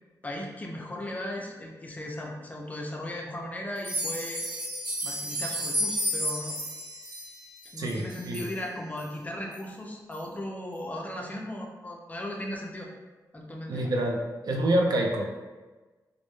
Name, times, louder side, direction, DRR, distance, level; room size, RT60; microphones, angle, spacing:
voice 1, 0.2-4.5 5.0-6.6 7.7-12.9 13.3-13.8, left 1 dB, 20° left, 0 dB, 0.3 m, -37 dB
sound 1, 3.8-8.5 9.0-9.1 9.5-9.6 10.1-10.2, equal, 90° right, 0.8 m, -32 dB
voice 2, 7.8-8.5 13.7-14.2 14.4-15.3, right 1 dB, 65° right, 1 dB, 0.3 m, -26 dB
2.0 x 2.0 x 3.0 m, 1.2 s
wide cardioid pair, 140°, 7 cm